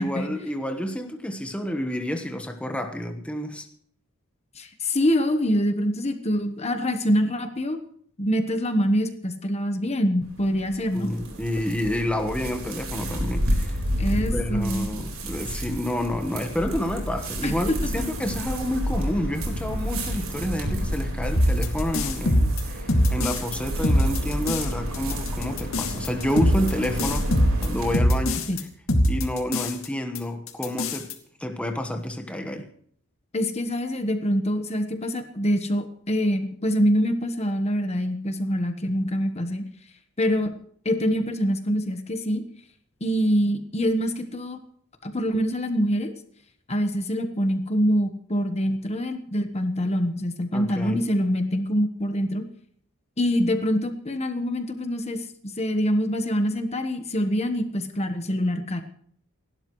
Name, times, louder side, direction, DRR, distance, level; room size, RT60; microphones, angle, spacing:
voice 1, 0.0-3.7 10.9-13.8 14.3-27.3 27.6-28.4 29.0-31.1 31.4-32.7 50.5-51.1, left 1 dB, 5° left, 5 dB, 1.2 m, -29 dB
voice 2, 4.6-7.8 8.2-11.1 14.0-14.9 17.4-18.0 28.5-28.6 33.3-39.6 40.2-40.5 40.8-42.4 43.0-44.6 45.0-46.1 46.7-52.4 53.2-55.2 55.6-58.8, equal, 30° left, 7 dB, 1.2 m, -25 dB
sound 1, 10.2-28.0, equal, 75° right, 4.3 m, -30 dB
sound 2, 21.3-23.6 23.8-24.7 24.9-28.6 28.9-29.9 30.1-30.2 30.5-31.1, equal, 65° left, 2.3 m, -22 dB
29.0 x 12.5 x 3.1 m, 0.62 s
head